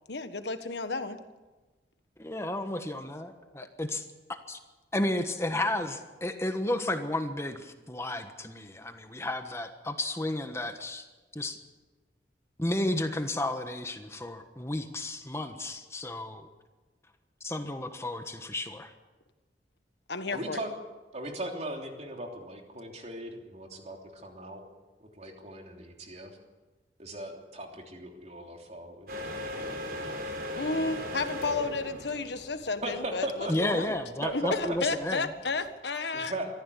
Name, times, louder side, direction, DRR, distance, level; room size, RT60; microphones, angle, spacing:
voice 1, 0.1-1.2 20.1-20.6 30.6-34.0 34.3-36.3, left 3 dB, 75° left, 9 dB, 1.5 m, -32 dB
voice 2, 2.2-4.0 4.5-4.6 4.9-11.1 11.3-11.6 12.6-16.5 17.4-18.9 33.5-35.3, left 1 dB, 15° left, 7 dB, 1.3 m, -32 dB
voice 3, 20.3-20.7 21.1-24.6 25.0-26.3 27.0-29.1 32.8-33.5 34.2-34.8 36.1-36.5, right 1 dB, 40° right, 2 dB, 3.2 m, -38 dB
sound 1, 29.1-35.7, equal, 55° right, 5.1 m, -39 dB
23.5 x 14.5 x 8.5 m, 1.2 s
head